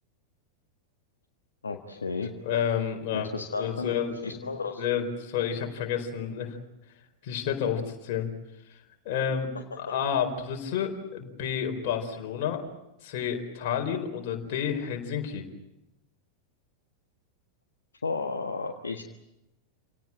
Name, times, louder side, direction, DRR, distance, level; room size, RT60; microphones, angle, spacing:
voice 1, 1.6-2.3 3.1-3.9 4.2-4.8 18.0-19.0, left 4 dB, 75° left, 3 dB, 1.6 m, -33 dB
voice 2, 2.4-3.3 3.5-6.6 7.2-8.3 9.0-9.5 9.8-12.6 13.0-15.5, left 8 dB, 50° left, 4 dB, 4.4 m, -30 dB
29.5 x 18.0 x 9.0 m, 0.91 s
figure-of-eight pair, 90°, 0 cm